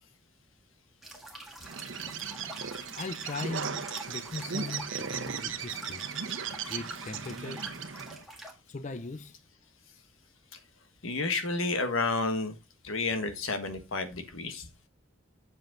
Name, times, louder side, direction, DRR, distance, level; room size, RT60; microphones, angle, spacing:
sound 1, 1.0-8.5, right 1 dB, ahead, 1.7 m, -47 dB
Bird, 1.6-8.2, right 6 dB, 70° right, 1.0 m, -37 dB
voice 1, 2.9-6.0 6.7-7.7 8.7-9.4, left 3 dB, 35° left, 0.5 m, -39 dB
voice 2, 11.0-12.6 12.8-14.7, left 3 dB, 80° left, 1.5 m, -30 dB
7.8 x 7.3 x 3.8 m
head